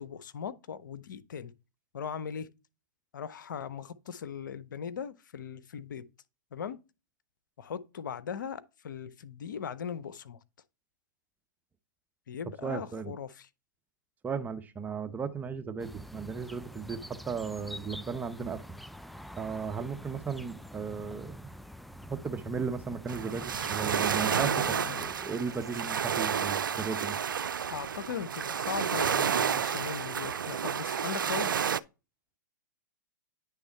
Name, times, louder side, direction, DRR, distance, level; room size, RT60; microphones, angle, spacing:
voice 1, 0.0-1.5 1.9-2.5 3.1-6.1 6.5-6.8 7.6-10.4 12.3-13.5 24.2-25.1 27.7-31.5, left 7 dB, 75° left, 0.7 m, -39 dB
voice 2, 12.6-13.1 14.2-18.6 19.4-21.3 22.1-27.2, right 5 dB, 15° right, 0.7 m, -36 dB
sound 1, 15.8-26.1, equal, ahead, 0.3 m, -47 dB
sound 2, 23.1-31.8, right 7 dB, 85° right, 0.4 m, -30 dB
9.6 x 3.5 x 4.4 m
hypercardioid pair, 115°, 11 cm